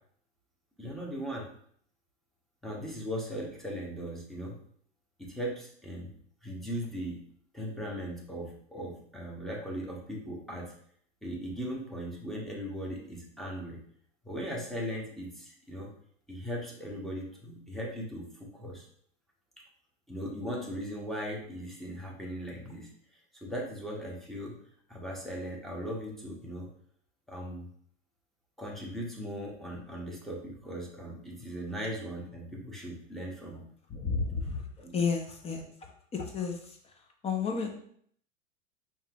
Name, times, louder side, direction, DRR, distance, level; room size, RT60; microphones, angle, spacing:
voice 1, 0.8-1.5 2.6-4.6 5.2-6.1 6.4-7.2 7.5-10.7 11.2-13.8 14.2-15.9 16.3-18.8 20.1-22.9 23.4-24.6 24.9-26.7 27.3-27.7 28.6-33.6 34.8-35.0, equal, ahead, -3 dB, 0.9 m, -38 dB
voice 2, 33.9-34.6 34.9-35.7 36.1-36.6 37.2-37.8, left 5 dB, 15° left, 3 dB, 0.6 m, -31 dB
5.4 x 2.9 x 2.4 m, 0.63 s
hypercardioid pair, 120°, 38 cm